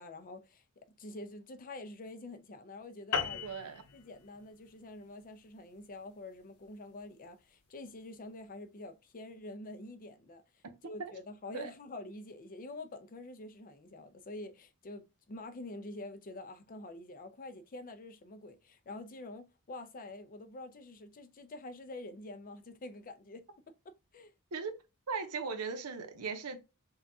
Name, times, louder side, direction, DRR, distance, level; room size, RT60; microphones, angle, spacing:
voice 1, 0.0-3.4 3.9-23.7 24.1-24.3, left 2 dB, 40° left, 0.5 m, -47 dB
sound 1, 3.1-7.9, left 6 dB, 90° left, 0.7 m, -40 dB
voice 2, 3.3-3.8 10.6-10.7 11.0-11.1 11.5-11.7 24.5-24.8 25.1-26.6, right 5 dB, 85° right, 0.8 m, -38 dB
5.5 x 2.4 x 2.7 m
head